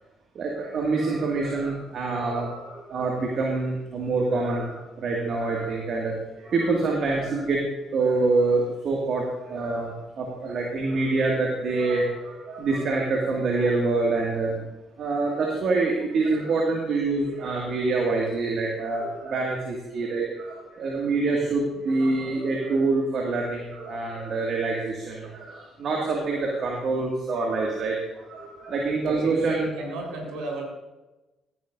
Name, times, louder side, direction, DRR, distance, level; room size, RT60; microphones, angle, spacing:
voice 1, 0.3-7.6 7.9-14.6 15.0-29.7, right 3 dB, 60° right, -1 dB, 2.1 m, -26 dB
voice 2, 29.1-30.6, right 2 dB, 75° right, -1 dB, 4.3 m, -34 dB
17.5 x 10.5 x 2.6 m, 1.1 s
hypercardioid pair, 55°, 0 cm